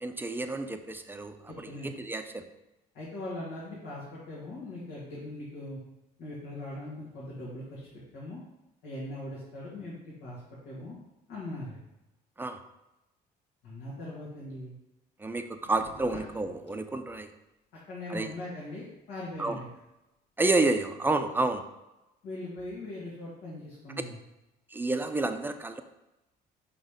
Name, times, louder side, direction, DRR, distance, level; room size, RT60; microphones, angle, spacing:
voice 1, 0.0-1.3 1.8-2.4 12.4-12.6 15.2-17.3 18.1-18.3 19.4-19.6 20.4-21.6 24.7-25.8, right 2 dB, 10° right, 7 dB, 0.5 m, -29 dB
voice 2, 1.5-1.9 2.9-5.8 6.2-7.8 8.1-8.4 8.8-11.0 11.3-11.8 13.6-14.7 16.1-16.2 17.9-19.7 22.2-24.2, left 1 dB, 85° left, -7 dB, 1.9 m, -40 dB
sound 1, 15.5-17.1 18.6-18.7, left 3 dB, 35° left, 1.5 m, -51 dB
5.4 x 4.0 x 5.1 m, 0.95 s
cardioid pair, 110°, 17 cm